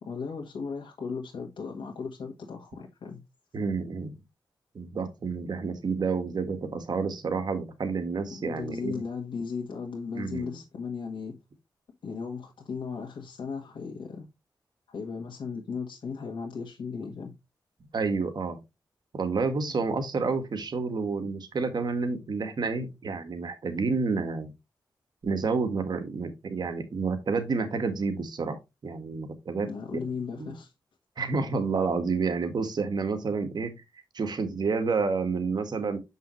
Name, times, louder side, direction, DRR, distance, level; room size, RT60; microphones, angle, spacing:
voice 1, 0.0-3.3 8.3-11.4 12.0-14.3 14.9-17.3 19.6-19.7 29.6-30.7, left 5 dB, 85° left, 1.5 m, -36 dB
voice 2, 3.5-4.1 4.7-9.0 10.1-10.6 17.9-18.6 19.1-24.5 25.2-29.7 30.4-30.5 31.2-33.7 34.1-36.0, right 4 dB, 60° right, 1.6 m, -29 dB
7.1 x 5.5 x 3.2 m
wide cardioid pair, 100°, 8 cm